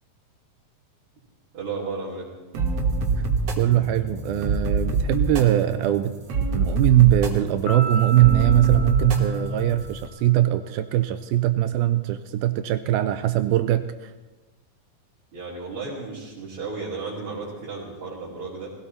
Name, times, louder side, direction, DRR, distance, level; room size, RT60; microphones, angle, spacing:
voice 1, 1.5-2.3 15.3-18.7, right 4 dB, 35° right, -8 dB, 4.1 m, -33 dB
sound 1, 2.5-10.1, right 3 dB, 55° right, 2.1 m, -26 dB
voice 2, 3.6-6.1 6.5-13.8, right 14 dB, 80° right, 9 dB, 2.4 m, -21 dB
Piano, 7.7-10.2, right 2 dB, 60° left, 3.2 m, -35 dB
20.0 x 16.5 x 4.2 m, 1.2 s
omnidirectional pair, 4.4 m